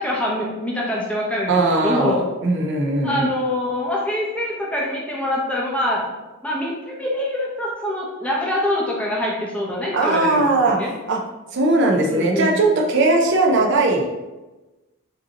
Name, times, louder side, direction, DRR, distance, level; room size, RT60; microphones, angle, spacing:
voice 1, 0.0-2.2 3.0-6.0 6.4-10.9 12.1-12.5, left 1 dB, 5° left, -4 dB, 0.7 m, -24 dB
voice 2, 1.5-3.3 9.9-10.8 11.1-11.2 11.5-14.1, right 2 dB, 55° right, 1 dB, 0.5 m, -19 dB
5.2 x 2.7 x 2.8 m, 1.1 s
head